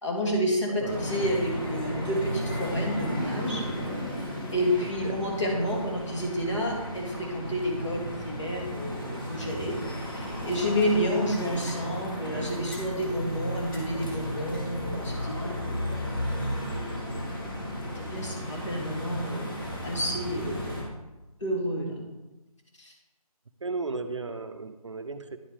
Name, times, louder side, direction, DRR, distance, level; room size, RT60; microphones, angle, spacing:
voice 1, 0.0-3.6 4.5-9.8 10.1-15.6 17.9-20.8 21.4-22.0 22.8-22.9, equal, 50° left, -1 dB, 2.6 m, -30 dB
voice 2, 0.7-1.0 4.8-5.2 23.6-25.4, right 3 dB, 50° right, 8 dB, 0.6 m, -35 dB
sound 1, 0.9-20.8, equal, 35° left, 2.0 m, -34 dB
10.5 x 5.4 x 5.0 m, 1.1 s
figure-of-eight pair, 170°, 19 cm